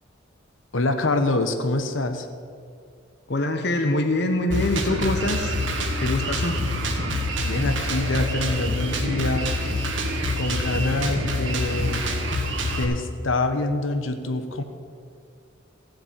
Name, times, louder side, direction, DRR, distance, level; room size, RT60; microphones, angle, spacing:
voice 1, 0.7-2.3 7.4-9.5 10.3-12.0 12.7-14.6, left 2 dB, 80° left, 7 dB, 1.1 m, -25 dB
voice 2, 3.3-5.6 6.0-6.6, left 1 dB, 55° left, 5 dB, 0.9 m, -24 dB
Drum kit, 4.5-12.8, left 1 dB, 65° right, 1.8 m, -26 dB
15.5 x 7.7 x 7.4 m, 2.2 s
head